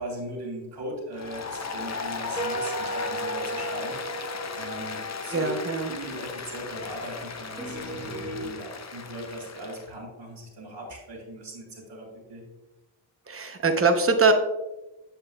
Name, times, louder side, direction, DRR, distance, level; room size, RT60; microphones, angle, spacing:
voice 1, 0.0-4.2 4.6-12.4, right 1 dB, 65° right, -7 dB, 2.4 m, -39 dB
Applause, 1.1-9.9, left 5 dB, 35° left, 0.6 m, -35 dB
sound 1, 1.2-8.4, right 3 dB, 10° right, 2.0 m, -38 dB
voice 2, 5.3-5.9 13.3-14.3, right 3 dB, 25° right, 5 dB, 0.8 m, -22 dB
7.5 x 7.3 x 2.3 m, 1.0 s
cardioid pair, 80°, 49 cm